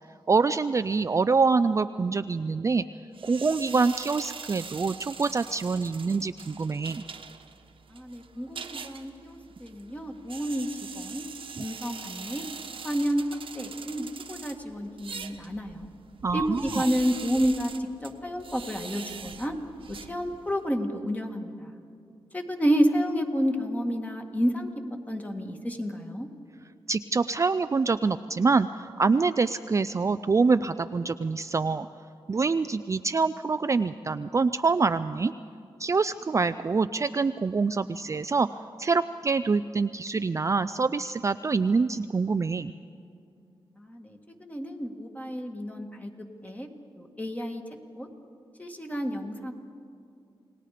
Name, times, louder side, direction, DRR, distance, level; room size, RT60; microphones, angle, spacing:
voice 1, 0.3-2.9 3.2-7.0 11.6-11.7 16.2-16.9 26.9-31.9 32.3-35.3 35.8-38.5 38.8-42.7, right 4 dB, 30° right, 11 dB, 0.4 m, -25 dB
sound 1, 3.1-20.7, right 6 dB, 65° right, 1.2 m, -43 dB
voice 2, 7.9-10.7 10.9-11.3 11.6-12.5 12.8-13.3 13.5-15.9 16.3-17.7 18.0-19.5 20.0-21.8 22.3-24.7 25.1-26.3 43.8-46.7 47.0-47.6 48.0-48.1 48.6-49.5, equal, 15° left, 4 dB, 1.9 m, -30 dB
28.5 x 18.5 x 5.0 m, 2.5 s
cardioid pair, 90°, 10 cm